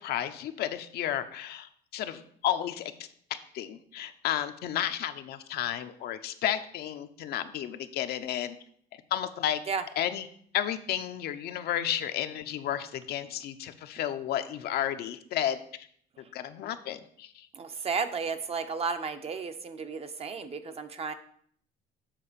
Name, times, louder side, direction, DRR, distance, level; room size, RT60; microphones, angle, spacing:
voice 1, 0.0-2.9 3.5-8.6 9.1-9.6 10.0-10.3 10.5-15.6 16.3-17.5, left 11 dB, 70° left, 8 dB, 0.7 m, -32 dB
voice 2, 17.5-21.1, right 5 dB, 35° right, 8 dB, 0.7 m, -33 dB
7.5 x 4.0 x 6.7 m, 0.63 s
cardioid pair, 110°, 17 cm